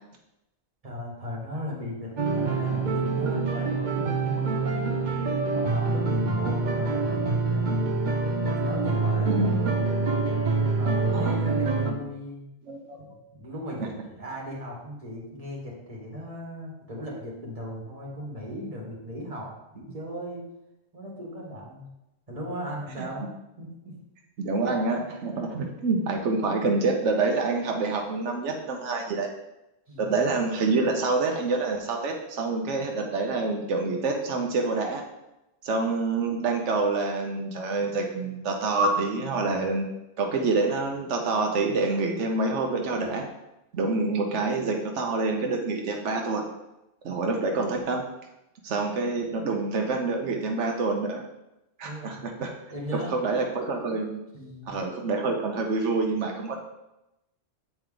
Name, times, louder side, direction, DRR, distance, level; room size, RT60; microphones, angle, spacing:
voice 1, 0.8-4.7 5.4-7.9 8.4-9.8 10.6-12.4 13.0-13.1 13.3-20.4 20.9-21.9 22.3-23.3 23.6-23.9 29.9-30.1 51.8-52.3 52.7-53.1 54.3-54.8, equal, 30° right, -3 dB, 2.1 m, -37 dB
sound 1, 2.2-11.9, right 3 dB, 50° right, 0.8 m, -26 dB
voice 2, 9.3-9.8 11.1-11.4 12.7-13.2 13.8-13.9 23.0-23.1 24.4-29.3 30.0-35.0 35.6-39.9 40.2-43.3 43.7-46.4 47.0-48.0 48.6-51.2 51.8-52.5 52.9-54.2 54.7-56.6, right 3 dB, 90° right, 2 dB, 1.2 m, -27 dB
8.5 x 4.5 x 3.8 m, 0.92 s
omnidirectional pair, 1.2 m